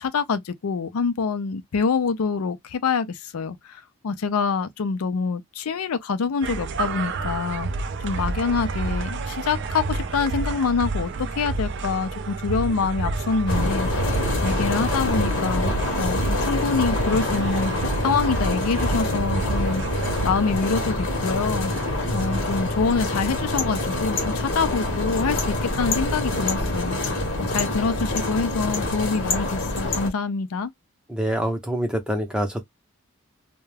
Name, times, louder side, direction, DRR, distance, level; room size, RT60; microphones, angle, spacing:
voice 1, 0.0-17.7 18.0-19.8 20.2-21.7 22.1-30.7, left 5 dB, 80° left, 0.4 m, -26 dB
sound 1, 6.4-24.0, right 3 dB, 50° right, 0.4 m, -30 dB
sound 2, 13.5-30.1, left 2 dB, 55° left, 0.9 m, -26 dB
voice 2, 31.1-32.6, right 1 dB, 5° right, 0.6 m, -25 dB
2.3 x 2.1 x 3.2 m
head